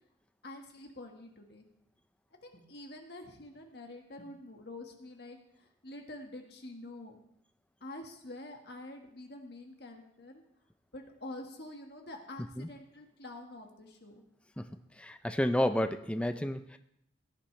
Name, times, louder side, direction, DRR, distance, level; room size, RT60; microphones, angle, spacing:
voice 1, 0.4-1.7 2.4-7.2 7.8-10.4 10.9-14.2, left 1 dB, 55° left, 3 dB, 1.7 m, -47 dB
voice 2, 15.0-16.8, left 1 dB, 5° left, 9 dB, 0.4 m, -31 dB
17.0 x 10.0 x 3.3 m, 0.75 s
head